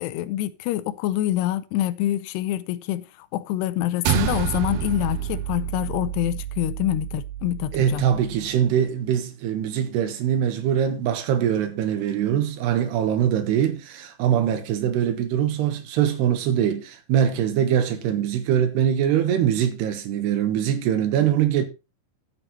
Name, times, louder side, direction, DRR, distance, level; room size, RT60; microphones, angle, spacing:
voice 1, 0.0-8.0, left 13 dB, 85° left, 2.8 m, -26 dB
sound 1, 4.0-8.6, right 13 dB, 75° right, 2.4 m, -29 dB
voice 2, 7.7-21.6, right 9 dB, 90° right, 3.3 m, -23 dB
12.0 x 8.0 x 4.1 m
omnidirectional pair, 4.7 m